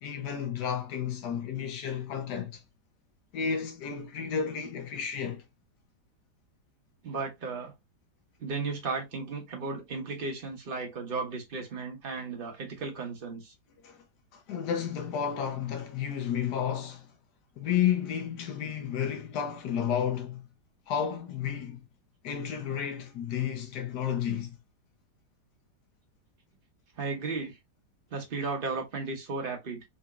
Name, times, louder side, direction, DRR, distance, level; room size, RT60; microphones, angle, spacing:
voice 1, 0.0-2.6 3.3-5.4 13.8-14.0 14.3-17.1 17.6-20.4 20.9-21.8 22.2-24.6, left 8 dB, 75° left, 1.2 m, -32 dB
voice 2, 7.0-7.7 8.4-13.5 27.0-27.6 28.1-29.8, right 4 dB, 35° right, 1.0 m, -35 dB
3.9 x 2.6 x 2.3 m
omnidirectional pair, 1.9 m